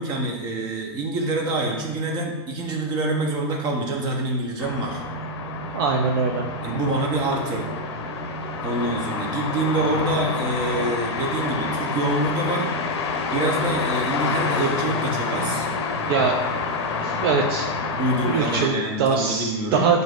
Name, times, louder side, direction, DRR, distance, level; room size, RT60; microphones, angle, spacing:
voice 1, 0.0-5.0 6.6-7.6 8.6-12.7 13.3-15.7 17.9-19.9, right 2 dB, 30° right, 0 dB, 0.8 m, -26 dB
sound 1, 4.6-18.7, left 4 dB, 80° left, 0.5 m, -28 dB
voice 2, 5.7-6.5 16.1-16.4 17.0-17.7 18.2-20.0, right 5 dB, 60° right, 2 dB, 0.4 m, -22 dB
6.1 x 2.6 x 2.4 m, 1.1 s
supercardioid pair, 140°, 14 cm